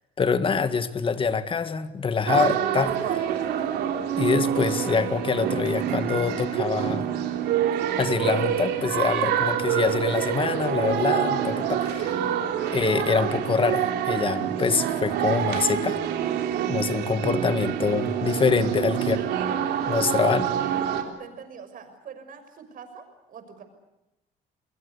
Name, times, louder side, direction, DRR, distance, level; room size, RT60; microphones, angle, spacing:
voice 1, 0.2-3.6 4.2-7.1 8.0-12.2 12.7-16.0 16.7-19.2 19.9-20.5, left 5 dB, 30° left, 10 dB, 1.9 m, -25 dB
sound 1, 2.3-21.0, right 9 dB, 80° right, 3.6 m, -26 dB
voice 2, 19.8-23.6, right 7 dB, 55° right, 8 dB, 6.1 m, -43 dB
29.0 x 21.0 x 8.4 m, 0.96 s
cardioid pair, 110°, 17 cm